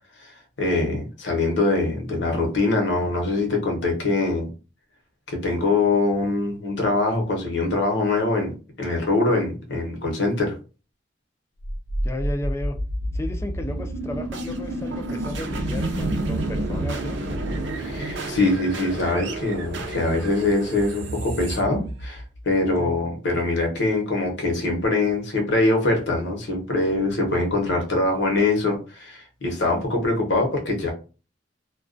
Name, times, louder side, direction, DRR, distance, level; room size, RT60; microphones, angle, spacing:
voice 1, 0.6-4.5 5.3-10.5 17.7-30.9, left 2 dB, 70° left, 1 dB, 0.8 m, -23 dB
sound 1, 11.6-22.7, right 1 dB, 85° right, 0.5 m, -29 dB
voice 2, 12.0-12.8 13.1-17.2 22.8-22.9, left 1 dB, 15° left, 6 dB, 0.3 m, -33 dB
2.3 x 2.2 x 2.5 m, 0.33 s
head